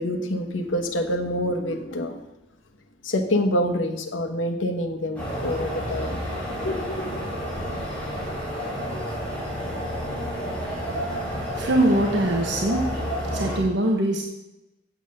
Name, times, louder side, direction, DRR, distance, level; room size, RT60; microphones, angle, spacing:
voice 1, 0.0-2.2 3.0-6.2 6.6-7.2, left 1 dB, 90° left, 5 dB, 1.2 m, -26 dB
sound 1, 5.1-13.6, equal, 5° left, 4.2 m, -30 dB
voice 2, 11.5-12.9 13.3-14.2, right 1 dB, 65° right, 1 dB, 1.2 m, -22 dB
8.1 x 7.5 x 6.6 m, 0.95 s
head